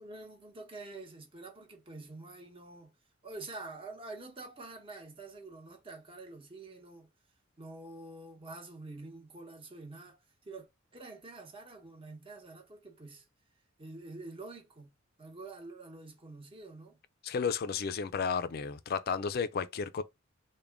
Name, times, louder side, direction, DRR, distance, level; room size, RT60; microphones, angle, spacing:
voice 1, 0.0-2.9 3.2-7.1 7.6-13.2 13.8-14.9 15.2-17.0, right 2 dB, 25° right, 0.9 m, -47 dB
voice 2, 17.2-20.0, left 6 dB, 50° left, 0.4 m, -33 dB
3.5 x 2.2 x 3.4 m
head